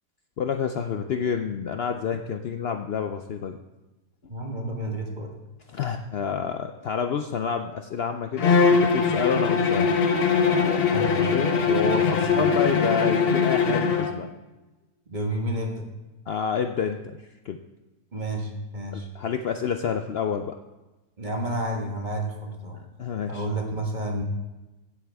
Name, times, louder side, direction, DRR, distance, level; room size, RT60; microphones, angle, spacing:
voice 1, 0.4-3.6 5.7-9.9 11.1-14.3 16.3-17.0 17.5-17.6 18.9-20.6 23.0-23.4, left 7 dB, 85° left, 6 dB, 0.5 m, -28 dB
voice 2, 4.3-5.3 10.9-11.1 12.3-12.4 15.1-15.9 18.1-19.1 21.2-22.8 23.3-24.2, right 1 dB, 30° right, 1 dB, 1.4 m, -30 dB
Bowed string instrument, 8.4-14.2, left 5 dB, 50° left, 0.8 m, -21 dB
16.0 x 8.2 x 3.5 m, 1.1 s
omnidirectional pair, 1.7 m